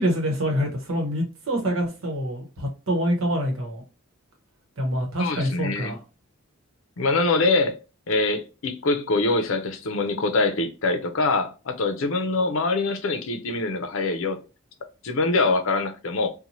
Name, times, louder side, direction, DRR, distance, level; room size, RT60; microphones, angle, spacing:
voice 1, 0.0-3.8 4.8-6.0, equal, 75° right, 0.9 m, -26 dB
voice 2, 5.2-5.9 7.0-7.8 8.1-14.4 15.0-16.3, left 3 dB, 65° left, 0.6 m, -24 dB
2.7 x 2.2 x 3.0 m
head